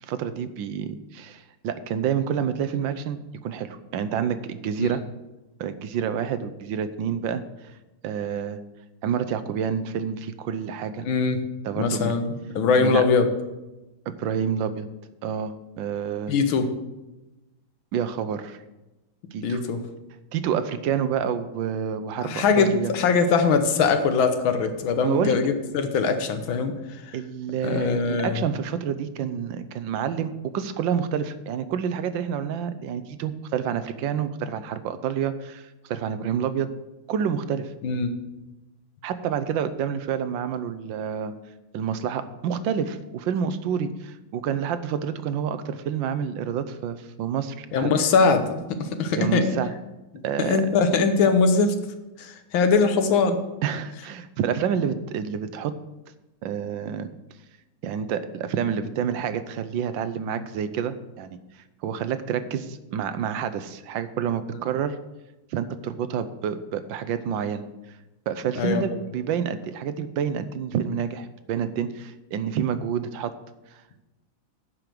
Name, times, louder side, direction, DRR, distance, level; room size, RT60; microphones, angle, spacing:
voice 1, 0.0-5.0 5.6-7.4 8.0-8.6 9.0-11.1 11.6-12.2 12.8-13.0 14.1-14.9 15.2-16.3 17.9-18.6 19.3-19.6 20.3-22.9 25.0-25.4 27.1-36.7 37.1-37.7 39.0-41.3 41.7-47.9 49.2-49.7 50.2-50.6 53.6-55.7 56.4-57.1 57.8-61.4 61.8-65.0 65.5-67.6 68.3-73.3, right 8 dB, 75° right, 12 dB, 1.4 m, -28 dB
voice 2, 11.0-11.4 11.8-12.3 12.6-13.3 16.3-16.7 19.4-19.8 22.2-26.7 27.6-28.4 37.8-38.1 47.7-49.6 50.1-51.8 52.2-53.4 60.3-60.4 68.6-68.8, left 5 dB, 85° left, 8 dB, 1.8 m, -22 dB
10.5 x 5.1 x 7.6 m, 1.0 s
omnidirectional pair, 2.1 m